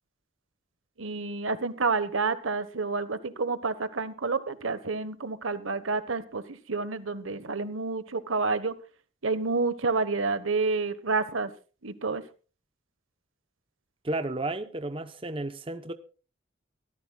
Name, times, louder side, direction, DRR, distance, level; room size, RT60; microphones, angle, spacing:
voice 1, 1.0-8.8 9.2-11.5 11.8-12.2, right 4 dB, 90° right, 1.3 m, -29 dB
voice 2, 14.0-15.9, right 2 dB, 25° right, 0.9 m, -32 dB
24.0 x 14.0 x 2.4 m
head